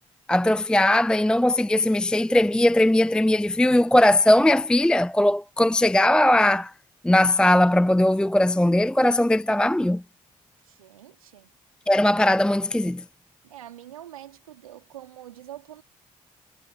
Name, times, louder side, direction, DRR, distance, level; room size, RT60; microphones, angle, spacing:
voice 1, 0.3-6.7 7.0-10.0 11.9-13.0, left 1 dB, 5° left, 0.5 m, -19 dB
voice 2, 10.7-11.5 13.4-15.8, right 12 dB, 85° right, 3.6 m, -44 dB
figure-of-eight pair, 40°, 17 cm